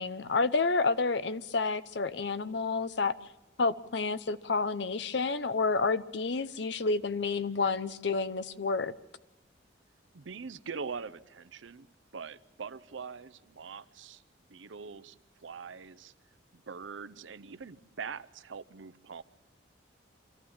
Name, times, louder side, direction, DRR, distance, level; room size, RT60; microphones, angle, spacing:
voice 1, 0.0-3.2 3.6-8.9, left 4 dB, 65° left, 14 dB, 0.7 m, -29 dB
voice 2, 10.1-11.9 12.1-14.2 14.5-15.2 15.4-16.1 16.5-19.2, right 5 dB, 90° right, 15 dB, 0.6 m, -43 dB
25.5 x 14.0 x 7.2 m, 1.1 s
head